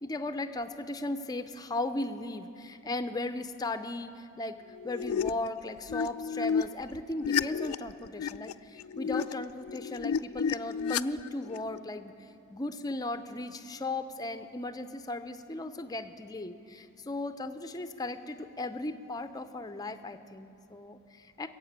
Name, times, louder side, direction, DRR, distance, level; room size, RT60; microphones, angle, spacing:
voice 1, 0.0-4.6 4.8-21.5, left 2 dB, 20° left, 9 dB, 0.5 m, -37 dB
sound 1, 4.7-5.5 5.9-11.8, left 7 dB, 80° left, 0.3 m, -32 dB
21.0 x 7.3 x 8.7 m, 2.7 s
head